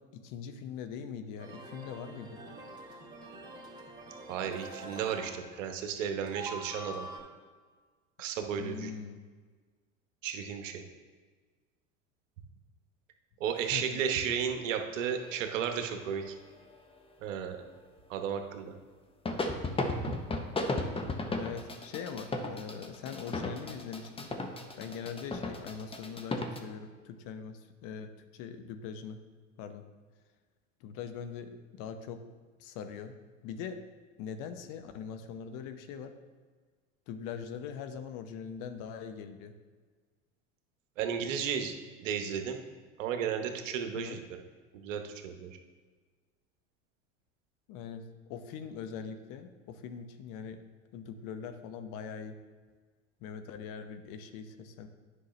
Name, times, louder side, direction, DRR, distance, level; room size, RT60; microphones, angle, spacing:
voice 1, 0.1-2.4 8.6-9.2 13.7-14.0 21.3-24.3 24.8-29.2 29.6-29.8 30.8-32.2 32.6-33.2 33.4-33.8 34.2-36.1 37.1-39.5 43.9-44.2 47.7-48.0 48.3-50.6 50.9-52.4 53.2-54.9, left 7 dB, 55° left, 8 dB, 0.8 m, -42 dB
sound 1, 1.4-6.0 6.3-7.2, right 1 dB, 10° right, 2.0 m, -45 dB
voice 2, 4.3-7.0 8.2-8.9 10.2-10.8 13.4-16.3 17.2-17.6 18.1-18.7 20.0-20.1 41.0-42.6 43.0-44.2 44.7-45.6, right 7 dB, 75° right, 5 dB, 1.0 m, -34 dB
sound 2, 15.0-17.0 19.3-26.6, left 2 dB, 15° left, 0.8 m, -36 dB
9.9 x 5.5 x 3.1 m, 1.5 s
hypercardioid pair, 85°, 39 cm